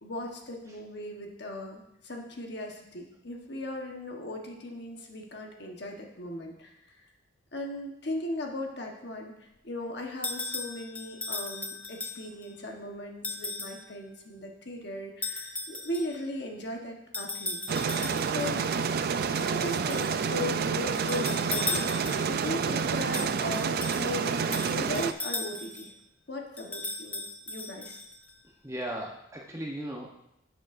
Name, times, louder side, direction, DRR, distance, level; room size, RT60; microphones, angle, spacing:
voice 1, 0.0-7.0 7.5-17.6 18.2-18.7 19.4-25.9 26.3-28.0, left 1 dB, 55° left, 1 dB, 1.2 m, -38 dB
sound 1, 10.2-12.5 13.2-13.8 15.2-16.2 17.1-18.5 19.3-20.2 20.9-22.4 23.1-25.9 26.6-28.3, left 2 dB, 10° left, 0.5 m, -37 dB
sound 2, 17.7-25.1, right 6 dB, 50° right, 0.3 m, -29 dB
voice 2, 28.6-30.1, right 1 dB, 15° right, 0 dB, 0.9 m, -36 dB
11.5 x 6.9 x 2.6 m, 0.82 s
head